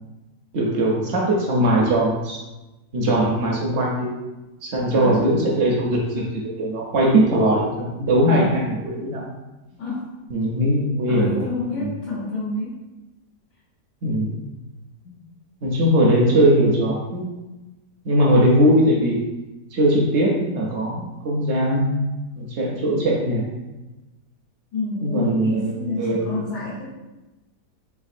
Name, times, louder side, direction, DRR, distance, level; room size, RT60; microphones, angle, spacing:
voice 1, 0.5-2.4 2.9-4.1 4.6-9.2 10.3-11.5 11.8-11.9 14.0-14.4 15.6-17.3 18.0-19.2 19.7-21.9 22.4-23.6 25.0-26.4, right 1 dB, 70° right, -2 dB, 0.6 m, -20 dB
voice 2, 4.9-5.7 8.3-8.7 9.8-10.0 11.1-12.8 15.0-15.1 24.7-26.8, left 2 dB, 75° left, -9 dB, 1.6 m, -29 dB
3.4 x 3.3 x 2.4 m, 1.1 s
omnidirectional pair, 1.8 m